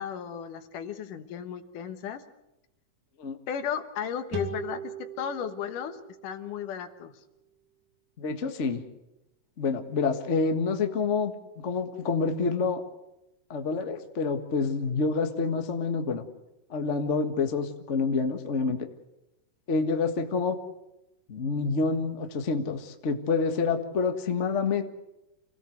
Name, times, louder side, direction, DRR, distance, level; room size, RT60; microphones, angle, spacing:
voice 1, 0.0-2.2 3.5-7.1, left 8 dB, 75° left, 9 dB, 2.7 m, -35 dB
sound 1, 4.3-7.7, right 4 dB, 60° right, 4.3 m, -40 dB
voice 2, 8.2-8.8 9.6-12.8 13.5-16.2 16.7-18.9 19.7-20.6 21.3-24.8, left 4 dB, 45° left, 5 dB, 0.9 m, -27 dB
27.0 x 17.0 x 7.8 m, 0.93 s
omnidirectional pair, 3.9 m